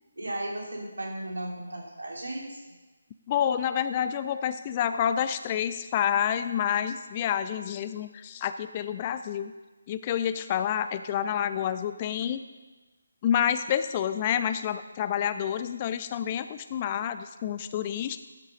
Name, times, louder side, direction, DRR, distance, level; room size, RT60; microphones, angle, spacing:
voice 1, 0.2-2.7, right 1 dB, 70° right, -2 dB, 2.9 m, -35 dB
voice 2, 3.3-9.5 9.9-12.4 13.2-18.2, left 9 dB, 25° left, 12 dB, 0.3 m, -28 dB
12.5 x 6.3 x 5.3 m, 1.2 s
figure-of-eight pair, 150°, 0 cm